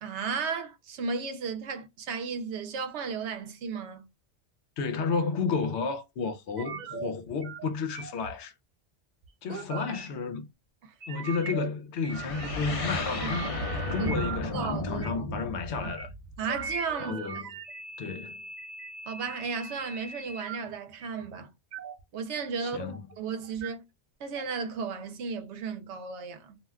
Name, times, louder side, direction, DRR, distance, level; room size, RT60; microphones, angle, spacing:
voice 1, 0.0-4.1 9.5-9.8 13.2-13.4 14.0-14.1 14.5-15.2 15.8-15.9 16.4-17.2 19.1-21.5 22.1-23.8 24.2-26.6, right 5 dB, 75° right, 0.9 m, -34 dB
voice 2, 4.8-8.5 9.4-10.5 11.1-16.1 17.0-17.4 18.0-18.3 22.6-23.0, left 5 dB, 75° left, 0.9 m, -32 dB
sound 1, 6.6-7.1 7.4-7.7 7.9-8.3 9.2-10.1 11.0-11.7 12.0-12.7 13.0-14.4 15.0-15.2 15.7-16.0 16.5-20.6 21.0-21.2 21.7-22.0 22.4-23.1 23.4-23.7 24.3-24.4, right 5 dB, 55° right, 0.5 m, -40 dB
sound 2, 12.1-16.9, left 2 dB, 40° left, 0.6 m, -34 dB
2.4 x 2.2 x 3.4 m
omnidirectional pair, 1.2 m